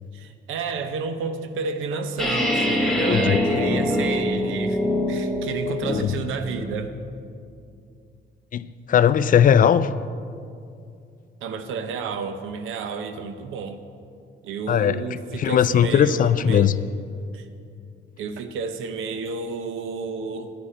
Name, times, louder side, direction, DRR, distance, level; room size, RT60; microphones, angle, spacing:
voice 1, 0.1-4.8 5.1-6.9 11.4-13.8 14.4-16.7 17.3-17.5 18.2-20.5, right 5 dB, 85° right, 0.8 m, -31 dB
sound 1, 2.2-6.2, left 1 dB, ahead, 1.5 m, -24 dB
voice 2, 3.1-3.5 5.9-6.1 8.5-9.9 14.7-15.0 15.4-16.8, left 9 dB, 45° left, 0.4 m, -19 dB
10.0 x 9.6 x 4.9 m
cardioid pair, 90°, 20 cm